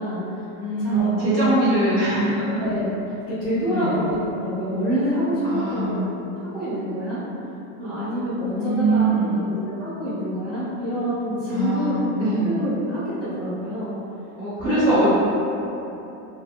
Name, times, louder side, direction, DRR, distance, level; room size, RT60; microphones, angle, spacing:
voice 1, 0.0-0.5 0.8-1.6 2.0-2.9 3.3-6.0 6.2-7.2 7.8-14.0 14.6-15.1, equal, ahead, -21 dB, 0.5 m, -27 dB
voice 2, 0.5-2.6 3.7-3.9 5.4-6.1 8.5-9.5 11.5-12.5 14.4-15.1, right 2 dB, 20° right, -14 dB, 0.8 m, -22 dB
2.9 x 2.0 x 2.6 m, 2.9 s
supercardioid pair, 180°, 42 cm